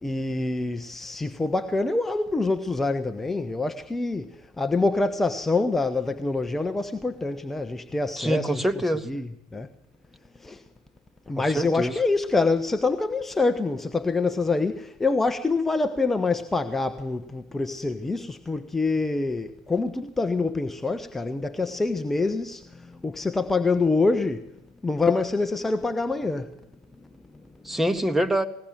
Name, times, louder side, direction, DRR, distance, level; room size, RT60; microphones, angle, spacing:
voice 1, 0.0-8.7 9.0-9.7 10.4-10.6 11.3-24.5 24.8-26.6, left 3 dB, 10° left, 1.0 m, -26 dB
voice 2, 8.2-9.1 11.4-11.9 27.7-28.4, right 1 dB, 5° right, 1.8 m, -25 dB
20.5 x 17.0 x 7.5 m
hypercardioid pair, 85°, 2 cm